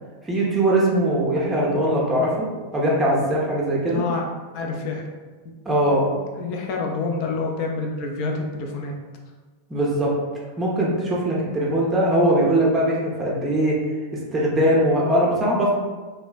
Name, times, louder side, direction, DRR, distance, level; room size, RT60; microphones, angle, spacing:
voice 1, 0.2-2.3 2.7-4.0 5.7-6.1 9.7-10.1 10.6-13.8 14.3-15.7, right 1 dB, 15° right, -5 dB, 0.6 m, -20 dB
voice 2, 3.9-4.2 4.5-5.0 5.4-5.5 5.9-8.9, left 4 dB, 45° left, 1 dB, 0.4 m, -28 dB
2.9 x 2.1 x 2.4 m, 1.3 s
figure-of-eight pair, 90°, 0 cm